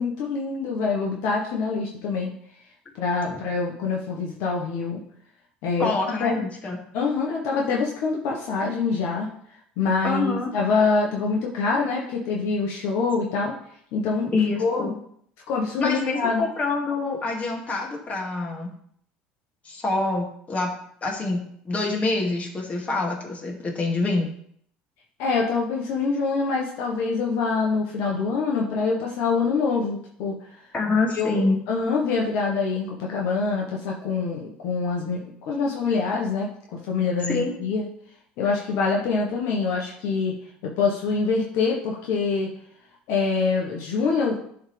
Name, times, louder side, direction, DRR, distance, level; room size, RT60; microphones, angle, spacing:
voice 1, 0.0-2.3 2.9-5.0 5.6-5.9 6.2-6.4 6.9-9.3 9.8-13.5 13.9-14.3 14.6-14.9 15.5-16.4 25.2-30.5 31.1-35.2 35.4-36.5 36.8-37.9 38.4-40.3 40.6-42.5 43.1-44.4, left 4 dB, 70° left, -1 dB, 1.3 m, -25 dB
voice 2, 5.8-6.8 10.0-10.5 14.3-14.9 15.8-18.7 19.6-20.7 21.0-24.3 30.7-31.6 37.3-37.5, left 3 dB, 30° left, -1 dB, 2.2 m, -26 dB
11.0 x 3.7 x 3.4 m, 0.65 s
hypercardioid pair, 80°, 4 cm